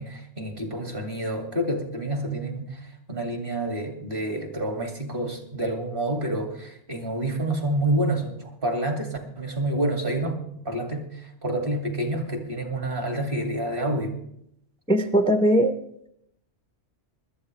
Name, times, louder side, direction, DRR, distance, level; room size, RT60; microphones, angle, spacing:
voice 1, 0.0-10.4 10.6-14.1, right 1 dB, 45° right, 3 dB, 2.5 m, -28 dB
voice 2, 14.9-15.8, right 1 dB, 5° left, 7 dB, 0.6 m, -20 dB
20.0 x 12.5 x 3.3 m, 0.74 s
omnidirectional pair, 1.3 m